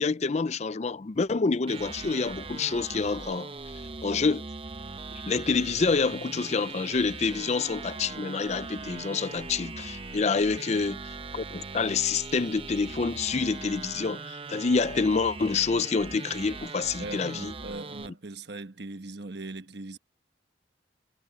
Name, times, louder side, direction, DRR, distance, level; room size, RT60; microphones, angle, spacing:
voice 1, 0.0-3.5 4.0-4.5 5.3-17.5, left 4 dB, 35° left, 0.4 m, -27 dB
sound 1, 1.7-18.1, right 3 dB, 30° right, 0.8 m, -40 dB
voice 2, 17.0-20.0, right 2 dB, 60° right, 1.3 m, -40 dB
head